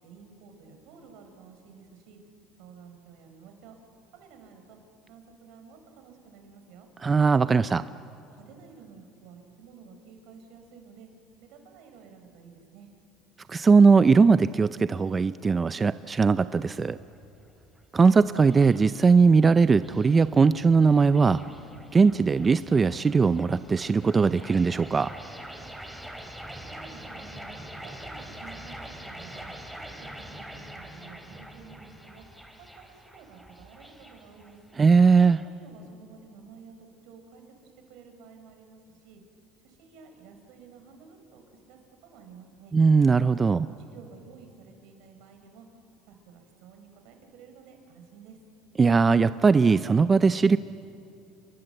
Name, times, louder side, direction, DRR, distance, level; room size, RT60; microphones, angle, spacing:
voice 1, 0.0-2.2 2.6-3.7 4.1-4.8 5.1-6.9 7.9-8.0 8.3-11.1 11.4-12.9 26.5-27.4 27.8-32.3 32.6-34.6 35.4-39.2 39.6-42.8 43.8-45.7 46.1-48.4, right 6 dB, 75° right, 5 dB, 4.5 m, -51 dB
voice 2, 7.0-7.9 13.5-17.0 17.9-21.4 21.9-25.1 34.8-35.4 42.7-43.7 48.8-50.6, right 4 dB, 25° right, 13 dB, 0.5 m, -20 dB
sound 1, 16.7-35.5, right 1 dB, ahead, 3.4 m, -45 dB
29.0 x 22.0 x 7.9 m, 2.7 s
supercardioid pair, 110°, 0 cm